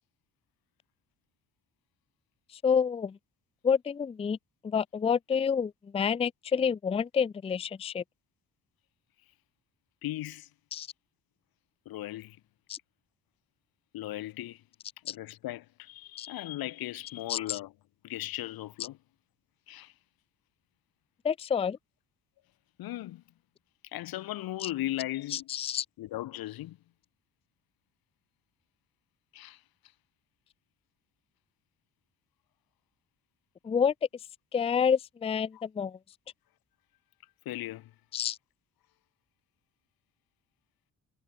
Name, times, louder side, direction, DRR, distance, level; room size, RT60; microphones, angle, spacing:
voice 1, 2.5-3.2 3.6-4.4 4.6-8.0 10.7-10.9 12.7-12.8 15.1-15.2 16.2-16.3 17.3-17.6 21.2-21.8 24.6-24.7 25.3-25.9 33.6-33.9 34.5-36.0 38.1-38.4, left 7 dB, 15° left, 0.4 m, -28 dB
voice 2, 10.0-10.5 11.9-12.4 13.9-14.6 15.1-17.7 18.0-19.0 19.7-19.9 22.8-23.2 23.9-25.5 26.0-26.8 29.3-29.6 35.5-35.6 37.4-37.9, left 15 dB, 90° left, 2.7 m, -37 dB
cardioid pair, 140°, 35 cm